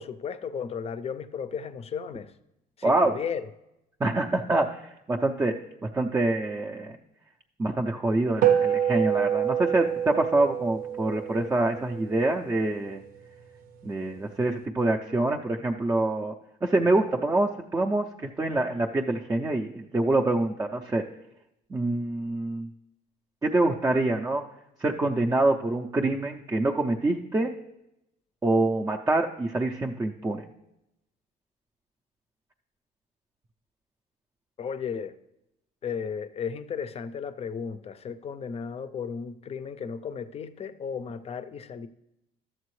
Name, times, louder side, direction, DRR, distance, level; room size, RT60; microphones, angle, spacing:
voice 1, 0.0-2.3 2.8-3.4 34.6-35.1 35.8-41.9, left 6 dB, 35° left, 12 dB, 0.5 m, -34 dB
voice 2, 4.0-5.5 5.9-7.0 7.6-13.0 13.8-16.3 16.6-21.0 21.7-22.7 23.4-24.4 24.8-27.5 28.4-30.4, right 2 dB, 15° right, 2 dB, 0.5 m, -25 dB
sound 1, 8.4-13.1, right 9 dB, 60° right, 0.7 m, -27 dB
12.0 x 7.5 x 3.1 m, 0.86 s
cardioid pair, 110°, 17 cm